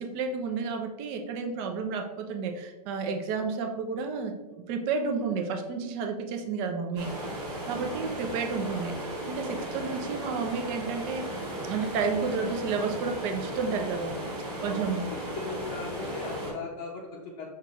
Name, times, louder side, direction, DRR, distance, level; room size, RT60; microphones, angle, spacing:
voice 1, 0.0-7.1 7.6-11.3 11.7-14.1 14.6-15.1, right 5 dB, 35° right, 5 dB, 0.5 m, -31 dB
sound 1, 7.0-16.5, right 1 dB, 20° right, 1.4 m, -36 dB
voice 2, 14.6-15.0 15.4-17.5, left 4 dB, 35° left, -3 dB, 0.7 m, -39 dB
5.7 x 2.3 x 3.0 m, 1.1 s
hypercardioid pair, 135°, 21 cm